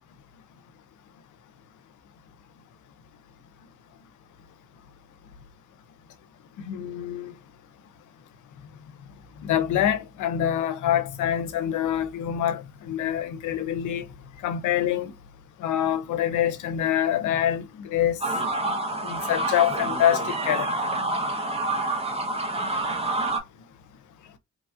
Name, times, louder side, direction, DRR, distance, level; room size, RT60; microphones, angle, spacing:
voice 1, 6.6-7.3 9.4-14.1 14.4-15.1 15.6-18.2 19.0-20.7, left 10 dB, 80° left, 0.6 m, -25 dB
sound 1, 18.2-23.4, right 2 dB, 20° right, 0.7 m, -27 dB
3.1 x 2.3 x 2.5 m
cardioid pair, 90°, 30 cm